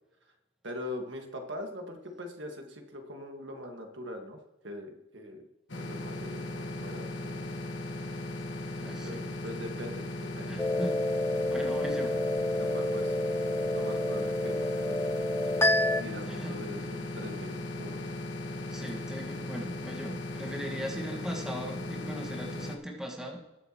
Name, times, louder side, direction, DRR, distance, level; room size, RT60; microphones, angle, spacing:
voice 1, 0.6-4.4 4.6-5.4 5.8-7.5 8.8-10.6 12.6-13.2 13.7-14.6 14.8-15.1 15.4-15.6 16.0-18.3, left 1 dB, 60° right, 3 dB, 1.7 m, -42 dB
sound 1, 5.7-22.8, left 2 dB, 60° left, 1.3 m, -37 dB
voice 2, 8.8-9.3 10.5-11.0 11.5-12.2 16.3-16.6 18.7-23.4, equal, 5° right, 0 dB, 1.5 m, -39 dB
sound 2, 10.6-16.0, left 1 dB, 10° left, 0.4 m, -29 dB
21.0 x 7.9 x 3.0 m, 1.1 s
head